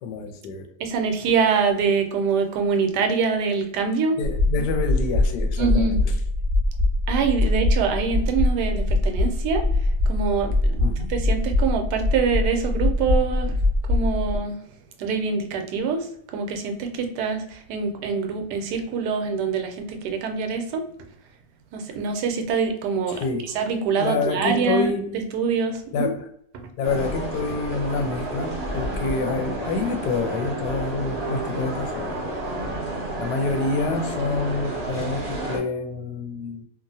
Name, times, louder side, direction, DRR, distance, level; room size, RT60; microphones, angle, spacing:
voice 1, 0.0-0.7 4.2-6.1 10.8-11.1 23.1-23.5 24.0-25.2 25.9-26.3 26.8-32.2 33.2-36.6, left 4 dB, 80° left, 6 dB, 1.1 m, -27 dB
voice 2, 0.8-4.2 5.6-6.0 7.1-9.6 10.1-10.8 11.1-13.5 13.9-14.6 15.0-16.1 16.3-20.8 21.7-23.2 23.5-24.9 25.3-26.1 26.5-26.6, right 5 dB, 80° right, 5 dB, 1.1 m, -24 dB
sound 1, 4.2-14.4, left 2 dB, 5° left, 1.1 m, -22 dB
sound 2, 26.8-35.6, right 2 dB, 40° right, 0.6 m, -30 dB
2.9 x 2.4 x 2.6 m, 0.68 s
omnidirectional pair, 1.8 m